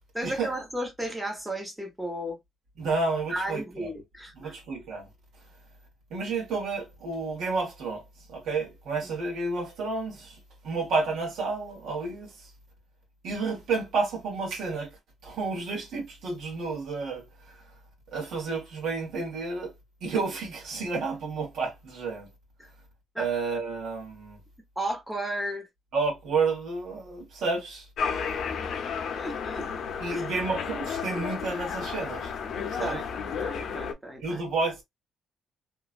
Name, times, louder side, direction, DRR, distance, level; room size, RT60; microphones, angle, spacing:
voice 1, 0.1-2.4 3.3-4.5 22.6-22.7 23.1-23.3 24.8-25.7 28.8-29.7 30.1-30.3 32.8-33.0 33.4-34.4, right 1 dB, 5° right, 1.0 m, -34 dB
voice 2, 2.8-3.9 4.4-5.1 6.1-12.5 13.2-14.9 15.2-17.7 18.1-19.7 20.0-22.3 23.2-24.4 25.9-27.9 28.1-28.2 30.0-32.3 32.7-33.0 34.2-34.8, right 4 dB, 70° right, 1.3 m, -31 dB
sound 1, 28.0-33.9, left 6 dB, 60° left, 0.6 m, -32 dB
2.9 x 2.4 x 2.4 m
cardioid pair, 140°, 0 cm